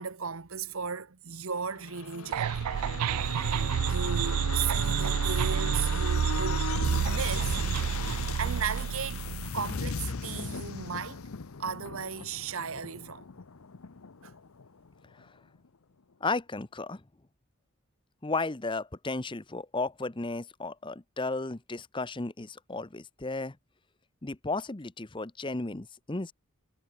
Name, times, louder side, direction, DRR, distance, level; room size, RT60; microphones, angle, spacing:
voice 1, 0.0-6.8 7.0-7.6 7.9-9.2 9.5-11.2 11.6-13.3 14.2-14.3, right 6 dB, 65° right, 1.2 m, -36 dB
sound 1, 1.8-15.2 15.6-15.7, left 5 dB, 70° left, 0.8 m, -38 dB
sound 2, 2.3-9.5, right 8 dB, 90° right, 0.3 m, -29 dB
voice 2, 16.2-17.0 18.2-23.6 24.2-26.3, left 3 dB, 20° left, 0.8 m, -34 dB
head